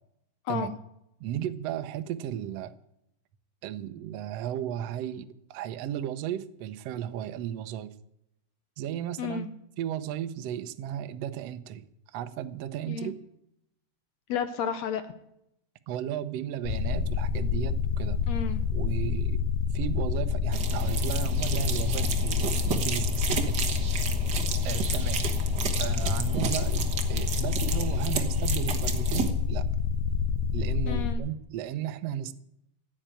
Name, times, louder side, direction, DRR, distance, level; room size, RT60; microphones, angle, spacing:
voice 1, 1.2-2.7 3.6-7.9 8.8-9.5 9.8-11.8 12.1-13.2 15.9-18.2 18.7-19.4 19.7-23.6 24.6-25.2 25.8-29.7 30.5-32.3, right 10 dB, 80° right, 10 dB, 1.4 m, -34 dB
voice 2, 9.2-9.5 12.9-13.1 14.3-15.0 18.3-18.6 30.9-31.2, left 7 dB, 70° left, 10 dB, 1.6 m, -31 dB
sound 1, 16.6-31.2, left 6 dB, 90° left, 2.5 m, -28 dB
sound 2, 20.5-29.3, right 6 dB, 55° right, 1.1 m, -33 dB
15.0 x 8.8 x 8.9 m, 0.80 s
omnidirectional pair, 3.9 m